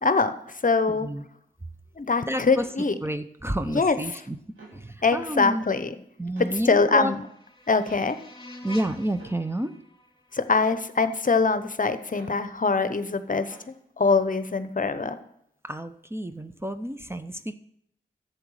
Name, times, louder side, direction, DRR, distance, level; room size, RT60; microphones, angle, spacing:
voice 1, 0.0-0.3 0.6-1.1 2.0-2.9 3.7-4.0 5.0-5.9 6.7-7.2 7.7-8.2 10.3-13.5 14.0-15.2, left 4 dB, 40° left, 11 dB, 0.9 m, -23 dB
voice 2, 0.9-1.2 2.3-2.7 3.0-4.4 4.7-5.6 6.2-7.1 8.6-9.7 15.6-17.6, right 1 dB, 10° right, 9 dB, 0.7 m, -30 dB
sound 1, 2.6-2.7 4.5-4.8 6.4-6.5 7.9-8.1 9.2-9.4 10.6-10.9 12.1-12.4 13.5-13.7, right 3 dB, 85° right, 2.4 m, -48 dB
sound 2, 6.6-11.4, left 1 dB, 20° left, 3.1 m, -48 dB
11.5 x 8.0 x 4.9 m, 0.72 s
cardioid pair, 45°, 20 cm